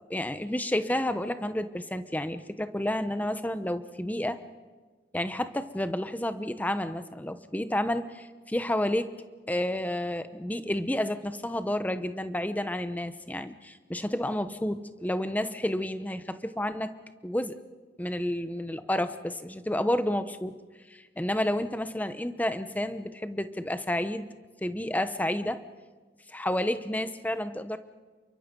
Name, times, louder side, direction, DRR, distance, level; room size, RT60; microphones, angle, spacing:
voice 1, 0.1-4.4 5.1-9.1 9.5-16.9 17.2-17.6 18.0-20.6 20.9-24.3 24.6-25.6 26.3-27.8, left 1 dB, 10° left, 10 dB, 0.9 m, -30 dB
29.0 x 23.5 x 5.4 m, 1.3 s
head